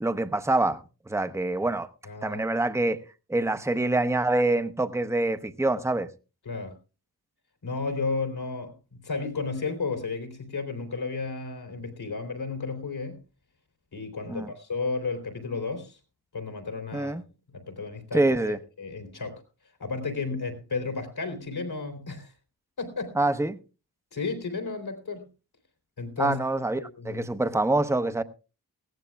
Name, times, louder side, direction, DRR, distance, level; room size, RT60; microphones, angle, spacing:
voice 1, 0.0-1.9 2.2-3.0 3.3-6.1 14.3-14.5 16.9-17.2 18.1-18.6 23.2-23.6 26.2-28.2, right 2 dB, 5° right, 0.8 m, -25 dB
voice 2, 2.0-2.4 6.4-6.7 7.6-13.2 13.9-16.0 16.3-17.1 17.5-19.4 19.8-22.3 22.8-23.1 24.1-25.3 26.0-26.4 26.7-27.3, left 4 dB, 80° left, 3.4 m, -33 dB
19.5 x 15.5 x 2.3 m
cardioid pair, 60°, 38 cm